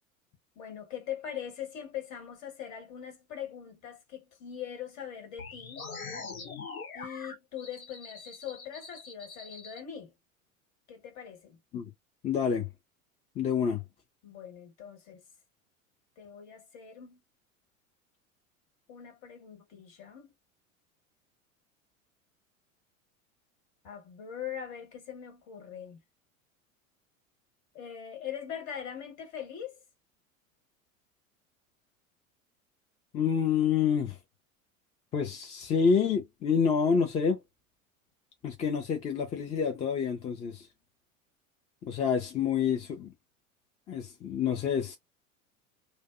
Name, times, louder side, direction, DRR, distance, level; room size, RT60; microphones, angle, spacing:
voice 1, 0.5-5.9 6.9-10.1 10.9-11.6 14.2-15.2 16.2-17.2 18.9-20.3 23.8-26.0 27.7-29.8, left 9 dB, 40° left, 1.3 m, -41 dB
sound 1, 5.4-9.8, left 4 dB, 80° left, 0.9 m, -43 dB
voice 2, 12.2-12.7 13.4-13.8 33.1-34.2 35.1-37.4 38.4-40.7 41.9-43.1 43.9-45.0, left 6 dB, 15° left, 0.4 m, -28 dB
2.4 x 2.1 x 2.4 m
figure-of-eight pair, 85°, 42 cm